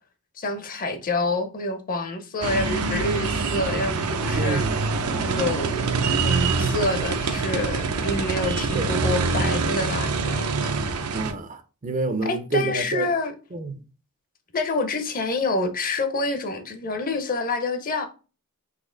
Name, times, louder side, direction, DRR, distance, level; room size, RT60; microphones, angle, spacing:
voice 1, 0.4-4.6 5.2-6.0 6.2-10.7 12.2-13.3 14.5-18.1, left 2 dB, 40° left, 0.6 m, -27 dB
sound 1, 2.4-11.3, right 4 dB, 75° right, 0.6 m, -25 dB
voice 2, 4.4-4.8 8.7-8.9 11.1-13.1 13.5-13.7, right 3 dB, 35° right, 0.5 m, -28 dB
4.2 x 2.8 x 3.7 m
head